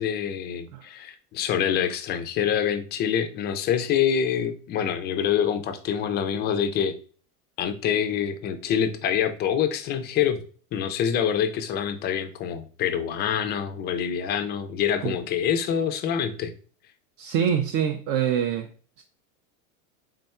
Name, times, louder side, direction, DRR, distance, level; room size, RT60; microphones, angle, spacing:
voice 1, 0.0-7.0 7.6-10.4 10.7-16.5, left 8 dB, 25° left, 0.3 m, -26 dB
voice 2, 17.2-18.7 19.0-19.1, right 8 dB, 45° right, 0.4 m, -25 dB
3.7 x 2.2 x 4.1 m
supercardioid pair, 125°, 43 cm